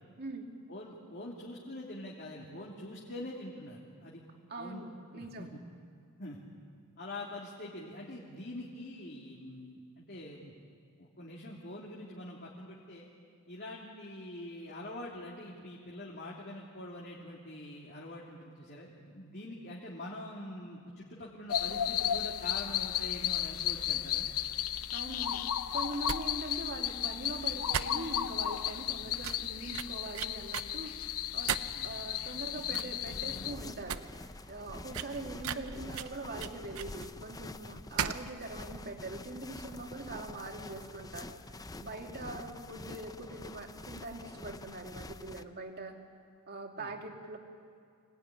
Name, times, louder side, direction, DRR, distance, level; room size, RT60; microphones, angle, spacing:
voice 1, 0.7-4.2 4.6-4.9 5.1-5.6 6.2-6.4 7.0-10.5 11.0-13.1 13.5-24.3 29.0-29.1 31.7-31.9 35.1-35.2 42.2-42.3 46.7-46.9, left 1 dB, 50° left, -4 dB, 2.9 m, -44 dB
voice 2, 4.5-5.5 24.9-25.4 25.7-31.5 31.8-34.0 34.5-46.0 46.5-47.4, right 2 dB, 45° right, 3 dB, 2.4 m, -42 dB
sound 1, 21.5-33.5, left 11 dB, 85° left, 0.7 m, -34 dB
sound 2, 26.0-26.2 26.5-26.6 26.9-27.0 27.7-28.3 28.7-28.8 29.2-30.7 31.5-31.9 32.3-32.4 32.7-33.0 33.3-33.4 33.7-34.0 34.3-34.4 34.9-37.1 38.0-38.3 38.5-38.6, right 8 dB, 75° right, 0.8 m, -36 dB
sound 3, 33.1-45.4, left 2 dB, 15° left, 0.6 m, -47 dB
25.5 x 17.5 x 9.9 m, 2.3 s
head